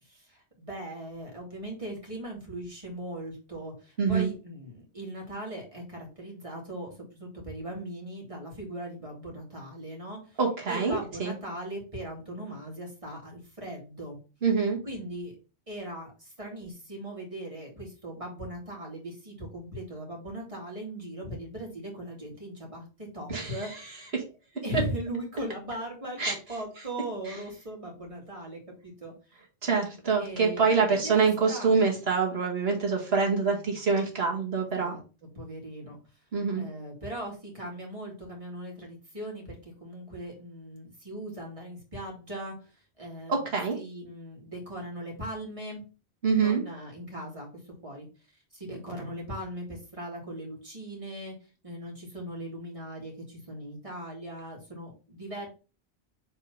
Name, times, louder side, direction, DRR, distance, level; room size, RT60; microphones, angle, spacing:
voice 1, 0.0-10.4 10.7-14.2 14.8-15.3 15.7-24.1 24.6-29.4 30.2-31.9 34.6-35.0 35.3-36.0 36.5-43.5 43.7-45.8 46.3-48.1 48.5-51.4 51.6-55.5, right 1 dB, 30° right, -2 dB, 2.4 m, -39 dB
voice 2, 4.0-4.3 10.4-11.3 14.4-14.8 23.3-23.5 24.1-24.2 26.2-26.3 29.6-35.0 36.3-36.6 43.3-43.8 46.2-46.6, right 5 dB, 70° right, 0 dB, 2.0 m, -25 dB
4.7 x 3.7 x 5.4 m, 0.33 s
omnidirectional pair, 1.1 m